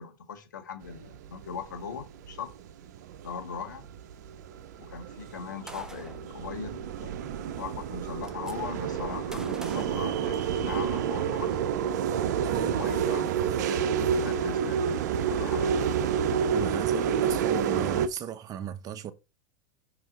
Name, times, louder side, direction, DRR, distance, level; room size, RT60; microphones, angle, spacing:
voice 1, 0.0-2.5 3.2-3.8 4.8-7.2 7.6-11.6 12.5-13.3 13.7-14.9 15.3-16.1, left 6 dB, 90° left, 1.7 m, -39 dB
sound 1, 0.8-18.1, right 7 dB, 75° right, 0.6 m, -29 dB
Gunshot gunfire, 5.7-6.3 7.5-7.6 7.8-8.5 9.3-10.8, right 1 dB, 5° right, 1.0 m, -45 dB
voice 2, 12.4-12.8 16.5-19.1, right 9 dB, 40° right, 1.0 m, -36 dB
6.0 x 4.8 x 3.9 m
hypercardioid pair, 95°, 10 cm